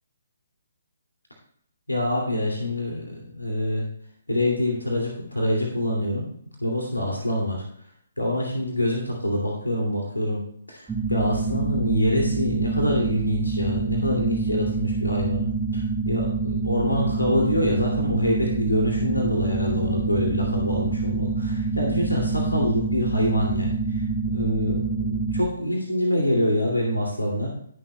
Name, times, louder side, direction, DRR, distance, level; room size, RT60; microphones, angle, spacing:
voice 1, 1.9-3.9 4.3-6.3 6.6-7.6 8.2-10.4 10.7-15.4 15.7-27.5, left 1 dB, 85° left, -1 dB, 2.5 m, -25 dB
sound 1, 10.9-25.5, right 4 dB, 10° right, 1.1 m, -26 dB
19.5 x 7.2 x 2.3 m, 0.66 s
figure-of-eight pair, 135°, 0 cm